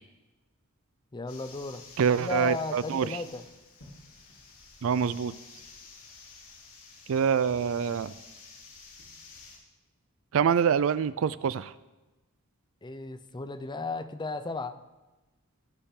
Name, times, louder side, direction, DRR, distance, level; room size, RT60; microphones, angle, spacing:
voice 1, 1.1-1.8 2.2-3.4 12.8-14.8, left 3 dB, 20° left, 10 dB, 0.5 m, -35 dB
sound 1, 1.3-9.6, left 4 dB, 80° left, 3.2 m, -51 dB
voice 2, 2.0-3.2 4.8-5.3 7.1-8.1 10.3-11.7, right 7 dB, 65° right, 17 dB, 0.4 m, -25 dB
19.0 x 7.0 x 3.8 m, 1.1 s
head